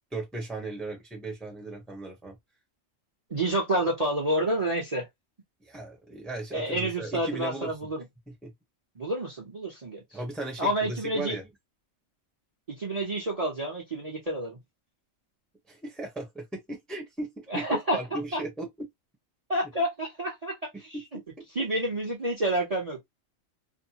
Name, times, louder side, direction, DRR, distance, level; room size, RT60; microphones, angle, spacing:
voice 1, 0.1-2.4 5.6-7.9 8.4-8.5 10.1-11.5 15.7-17.6 17.9-18.9 20.7-21.0 21.4-21.5, right 2 dB, ahead, 0.8 m, -37 dB
voice 2, 3.3-5.1 6.5-8.0 9.0-10.0 10.6-11.4 12.7-14.6 17.5-18.0 18.3-18.4 19.5-20.6 21.6-23.0, right 1 dB, 30° right, 0.8 m, -29 dB
2.7 x 2.1 x 2.8 m
omnidirectional pair, 1.4 m